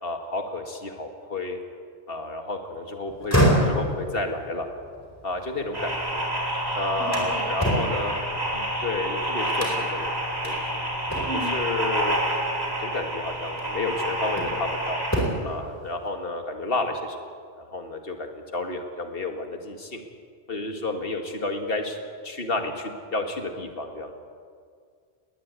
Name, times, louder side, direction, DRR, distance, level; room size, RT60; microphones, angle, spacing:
voice 1, 0.0-1.6 2.1-3.4 3.7-4.7 5.2-6.2 6.8-8.2 8.5-10.1 10.4-10.8 11.3-12.2 12.6-15.0 15.4-17.2 17.6-20.0 20.5-22.0 22.2-24.1, left 2 dB, 55° left, 4 dB, 2.3 m, -31 dB
sound 1, 3.1-6.2 6.6-9.0 9.6-10.0 10.4-10.6 11.1-11.6 12.8-13.0 13.6-14.7 15.0-15.6, equal, 15° left, 4.4 m, -27 dB
sound 2, 5.7-15.2, right 1 dB, 20° right, 5.0 m, -28 dB
voice 2, 7.0-7.4 11.3-11.5, equal, 75° right, -9 dB, 8.4 m, -34 dB
20.5 x 20.0 x 8.4 m, 2.1 s
omnidirectional pair, 1.1 m